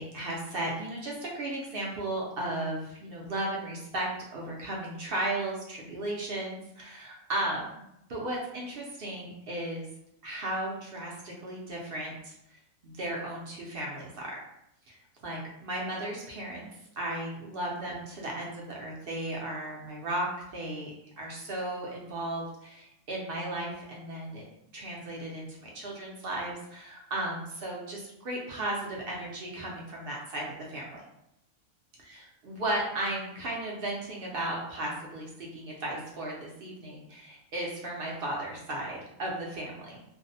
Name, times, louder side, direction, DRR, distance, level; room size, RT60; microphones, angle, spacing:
voice 1, 0.0-7.6 8.1-9.9 10.2-14.3 14.9-20.9 21.2-24.4 24.7-31.0 32.5-40.0, right 1 dB, 60° right, -3 dB, 0.6 m, -35 dB
2.6 x 2.0 x 2.6 m, 0.80 s
omnidirectional pair, 1.4 m